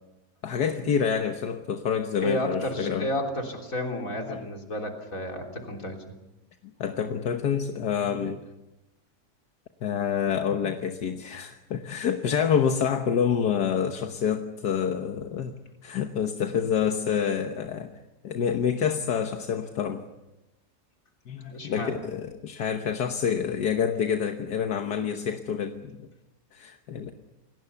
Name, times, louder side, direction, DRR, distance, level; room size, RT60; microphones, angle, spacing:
voice 1, 0.4-3.1 4.3-4.4 6.8-8.4 9.8-15.6 15.8-17.9 18.2-20.0 21.3-26.1 26.5-27.1, left 7 dB, 80° left, 5 dB, 1.7 m, -27 dB
voice 2, 2.2-6.0 21.5-21.9, left 1 dB, 55° left, 2 dB, 3.9 m, -31 dB
28.0 x 18.5 x 7.1 m, 0.98 s
omnidirectional pair, 1.8 m